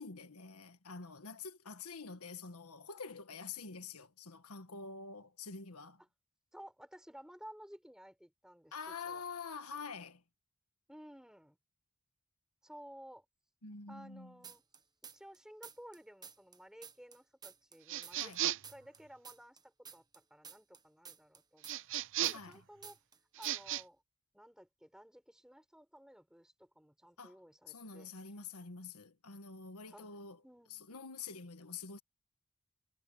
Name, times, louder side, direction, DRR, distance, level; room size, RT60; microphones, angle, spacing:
voice 1, 0.0-6.0 8.7-10.2 13.6-14.4 18.2-18.4 22.3-22.6 27.2-27.4 27.7-30.4 30.7-32.0, left 5 dB, 85° left, 1.5 m, -47 dB
voice 2, 6.5-9.2 10.9-11.6 12.6-13.2 13.9-14.6 15.1-23.0 23.4-24.0 24.3-28.1 29.9-30.2 30.4-31.0, equal, 5° right, 6.0 m, -55 dB
sound 1, 14.4-15.4 15.6-18.4 18.6-22.6 22.8-23.2 23.4-23.8, right 6 dB, 20° right, 1.1 m, -52 dB
sound 2, 17.9-18.8 21.7-22.5 23.3-23.8, right 12 dB, 60° right, 0.6 m, -36 dB
head